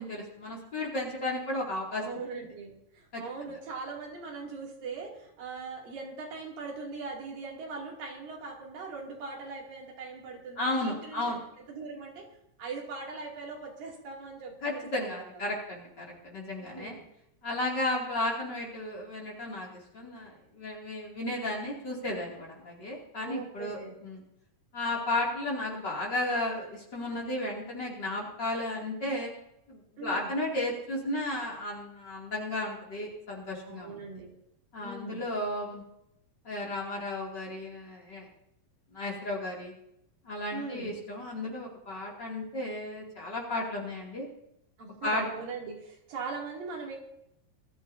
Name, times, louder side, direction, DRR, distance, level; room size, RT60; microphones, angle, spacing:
voice 1, 0.0-2.0 3.1-3.2 10.6-11.4 14.6-17.0 17.4-24.2 24.7-29.3 29.7-34.0 34.7-35.8 36.4-38.3 38.9-39.7 40.3-44.3 45.0-45.2, left 1 dB, 35° left, -3 dB, 2.8 m, -34 dB
voice 2, 2.0-11.3 11.7-12.3 12.6-15.2 16.6-17.1 23.2-23.9 30.0-30.3 33.6-34.3 34.8-35.3 40.5-40.9 44.8-47.0, right 4 dB, 85° right, -2 dB, 4.4 m, -40 dB
21.0 x 13.5 x 2.7 m, 0.80 s
omnidirectional pair, 3.9 m